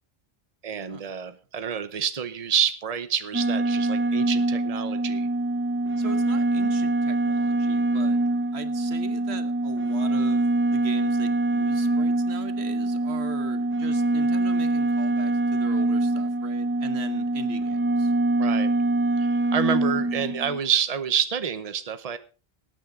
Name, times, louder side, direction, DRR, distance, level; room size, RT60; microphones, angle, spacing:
voice 1, 0.6-5.3 18.4-18.7 19.2-22.2, right 7 dB, 40° right, 11 dB, 1.0 m, -28 dB
sound 1, 3.3-20.6, right 2 dB, 15° right, 0.5 m, -24 dB
voice 2, 6.0-8.2 8.5-18.1, right 6 dB, 90° right, 10 dB, 1.4 m, -40 dB
19.0 x 8.9 x 3.8 m, 0.35 s
omnidirectional pair, 1.0 m